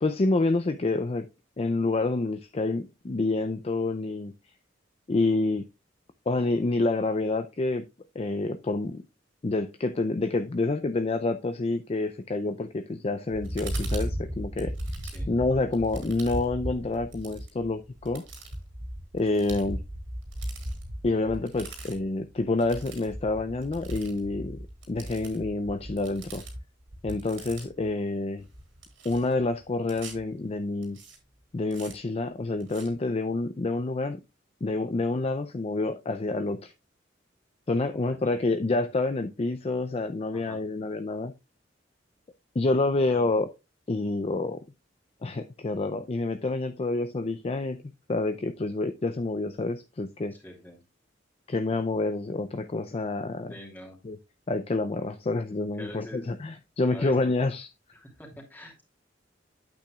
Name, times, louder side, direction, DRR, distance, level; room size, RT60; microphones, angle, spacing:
voice 1, 0.0-1.3 1.6-4.3 5.1-5.6 6.3-7.9 8.2-9.0 9.4-14.7 15.3-18.3 19.1-19.8 21.0-26.4 27.0-28.4 29.0-31.0 31.5-34.2 34.6-36.7 37.7-41.3 42.6-43.5 43.9-44.6 45.2-47.8 48.1-50.3 51.5-53.5 54.0-54.2 54.5-57.7, left 2 dB, 35° left, 0.5 m, -28 dB
sound 1, 13.3-27.9 28.4-30.2 30.8-31.2 31.7-31.9 32.6-32.9, right 1 dB, 80° right, 3.9 m, -37 dB
voice 2, 37.9-38.4 40.3-40.6 42.9-43.3 50.3-50.8 53.5-54.0 55.7-56.3 56.9-57.3 57.9-58.8, left 1 dB, 10° left, 2.8 m, -45 dB
8.9 x 8.4 x 2.3 m
head